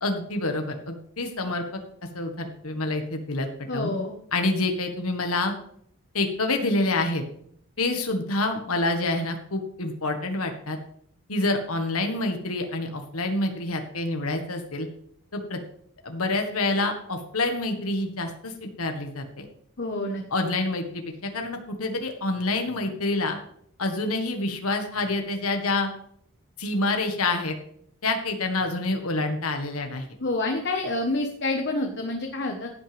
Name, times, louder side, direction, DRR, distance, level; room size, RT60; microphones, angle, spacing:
voice 1, 0.0-1.6 2.1-3.9 4.3-5.5 6.1-7.2 7.8-10.8 11.3-14.9 15.3-15.6 16.0-19.5 20.3-23.4 23.8-25.9 26.6-27.6 28.0-30.2, left 2 dB, 80° left, 4 dB, 1.6 m, -27 dB
voice 2, 3.7-4.1 19.8-20.2 30.2-32.7, left 2 dB, 50° left, 2 dB, 1.3 m, -28 dB
16.0 x 8.9 x 3.5 m, 0.65 s
head